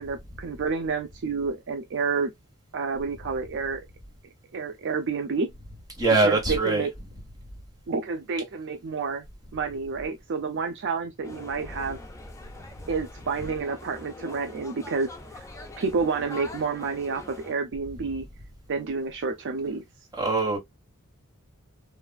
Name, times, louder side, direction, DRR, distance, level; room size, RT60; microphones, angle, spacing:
voice 1, 0.0-2.3 2.7-3.8 4.5-5.5 6.2-6.9 7.9-9.2 9.5-12.0 12.9-15.1 15.4-15.5 15.8-18.3 18.7-19.8, right 4 dB, 55° right, 0.4 m, -29 dB
voice 2, 6.0-6.9 11.7-11.8 20.2-20.6, right 3 dB, 15° right, 1.1 m, -23 dB
sound 1, 11.2-17.5, left 2 dB, 15° left, 0.5 m, -44 dB
3.2 x 2.3 x 2.2 m
head